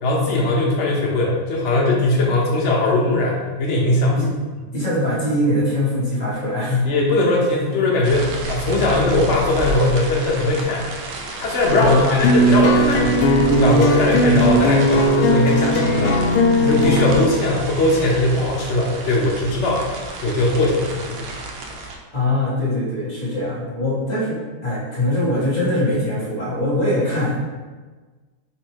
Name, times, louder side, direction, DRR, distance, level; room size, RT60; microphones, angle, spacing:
voice 1, 0.0-4.2 6.8-10.8 11.4-13.3 13.5-19.8 20.2-21.3, left 2 dB, 60° left, -3 dB, 0.7 m, -19 dB
voice 2, 4.7-6.8 11.7-12.4 22.1-27.4, left 1 dB, 25° left, -7 dB, 0.9 m, -22 dB
sound 1, 8.0-22.0, right 2 dB, 75° right, 1.4 m, -31 dB
sound 2, 12.2-17.3, equal, 85° left, 1.6 m, -17 dB
4.2 x 2.7 x 4.5 m, 1.3 s
omnidirectional pair, 2.4 m